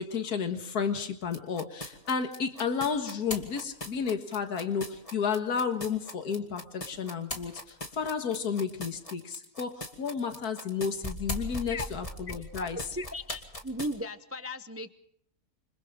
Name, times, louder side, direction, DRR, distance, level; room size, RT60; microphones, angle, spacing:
voice 1, 0.0-12.8, left 6 dB, 80° left, 6 dB, 2.1 m, -32 dB
sound 1, 1.3-13.9, left 1 dB, 20° left, 2.4 m, -39 dB
voice 2, 12.4-14.9, left 1 dB, 15° right, 10 dB, 0.5 m, -37 dB
28.5 x 26.0 x 3.7 m, 0.69 s
omnidirectional pair, 1.6 m